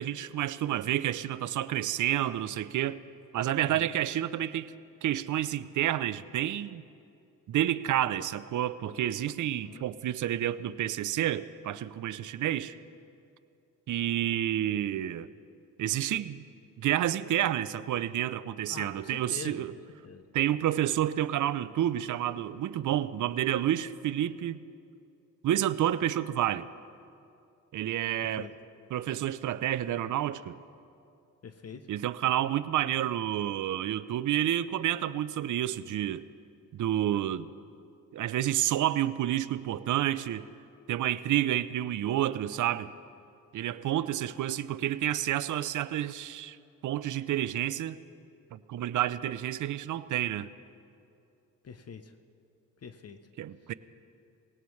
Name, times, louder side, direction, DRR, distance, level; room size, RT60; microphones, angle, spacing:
voice 1, 0.0-3.0 3.3-4.7 5.0-6.8 7.5-12.7 13.9-15.3 15.8-16.4 16.8-19.7 20.3-24.6 25.4-26.7 27.7-28.5 28.9-30.6 31.9-36.2 36.7-37.5 38.1-40.5 40.9-42.9 43.5-46.6 46.8-48.0 48.5-50.5 53.4-53.7, right 12 dB, 60° right, 0.6 m, -29 dB
voice 2, 18.7-19.7 20.0-20.2 28.4-28.5 31.4-31.8 51.6-52.1 52.8-53.2, left 6 dB, 45° left, 0.8 m, -44 dB
18.0 x 18.0 x 3.2 m
cardioid pair, 65°, 35 cm